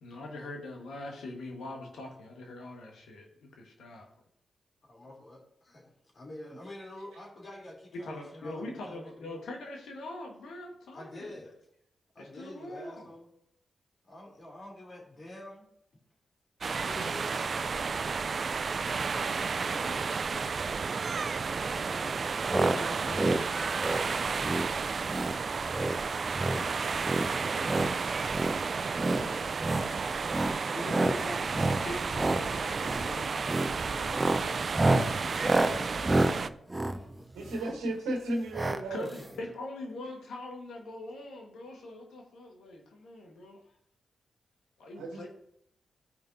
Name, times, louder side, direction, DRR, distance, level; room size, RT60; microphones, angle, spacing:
voice 1, 0.0-4.1 7.9-11.4 12.2-13.1 16.8-17.3 18.9-20.6 22.6-23.5 24.4-24.6 24.9-25.9 27.3-28.0 30.6-34.7 35.0-36.3 38.9-43.6 44.8-45.3, left 2 dB, 80° left, 1 dB, 1.4 m, -43 dB
voice 2, 4.8-9.4 10.9-11.5 12.1-13.3 14.0-15.6 16.7-17.9 21.5-22.3 29.0-29.8 37.2-37.5 38.0-38.1 39.0-39.1, left 1 dB, 50° left, -1 dB, 3.0 m, -47 dB
sound 1, 16.6-36.5, right 5 dB, 55° right, 0.3 m, -32 dB
sound 2, 22.5-22.8 23.1-23.4 23.8-24.1 24.4-24.7 25.1-25.4 25.7-26.0 26.3-26.6 27.0-27.9 28.3-28.6 28.9-29.2 29.6-29.9 30.3-30.6 30.9-31.2 31.5-31.8 32.1-32.4 32.8-33.1 33.4-33.7 34.1-37.8 38.5-38.8 39.1-39.2 39.4-39.5, right 2 dB, 25° right, 0.8 m, -28 dB
voice 3, 37.3-39.1 45.0-45.3, right 1 dB, 85° right, 1 dB, 1.6 m, -34 dB
15.0 x 5.3 x 2.7 m, 0.74 s
supercardioid pair, 45°, 0 cm